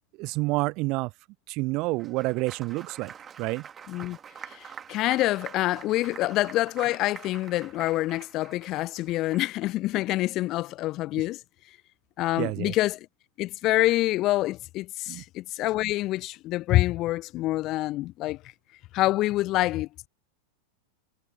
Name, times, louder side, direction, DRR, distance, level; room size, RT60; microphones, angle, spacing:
voice 1, 0.2-1.1 1.5-3.1 3.4-3.6 12.4-12.7 15.1-15.2, right 23 dB, 40° right, 0.4 m, -28 dB
Applause, 1.9-9.7, right 7 dB, 20° right, 2.5 m, -46 dB
voice 2, 3.9-4.2 4.5-11.4 12.2-13.1 13.4-18.4 18.9-20.1, left 17 dB, 35° left, 0.7 m, -26 dB
figure-of-eight pair, 90°, 0 cm